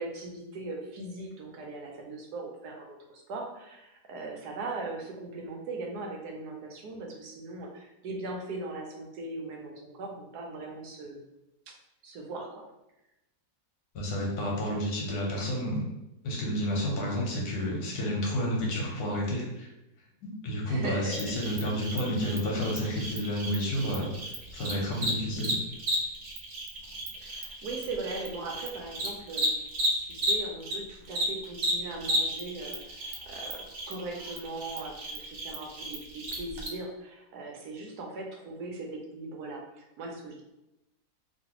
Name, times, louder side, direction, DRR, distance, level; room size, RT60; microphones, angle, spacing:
voice 1, 0.0-11.3 11.7-11.8 12.0-12.6 16.9-17.0 20.7-21.3 27.1-29.5 30.0-40.4, right 2 dB, 85° right, 1 dB, 1.2 m, -39 dB
voice 2, 13.9-15.9 16.2-19.7 20.2-24.1 24.5-25.6, equal, 80° left, -2 dB, 1.4 m, -30 dB
Cricket, 21.1-30.8 31.1-36.7, right 1 dB, 60° right, 0.8 m, -33 dB
3.1 x 2.5 x 2.9 m, 0.90 s
omnidirectional pair, 1.7 m